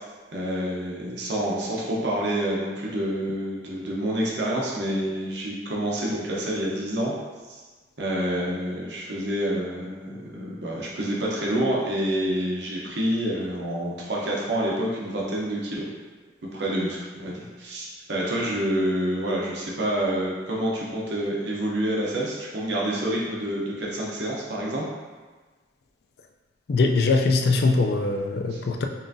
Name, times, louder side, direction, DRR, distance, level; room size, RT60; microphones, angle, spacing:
voice 1, 0.3-7.2 8.0-15.9 16.5-24.9 28.4-28.6, right 1 dB, 70° right, -4 dB, 0.7 m, -28 dB
voice 2, 26.7-28.9, left 3 dB, 60° left, 3 dB, 0.4 m, -22 dB
5.5 x 2.4 x 2.6 m, 1.3 s
head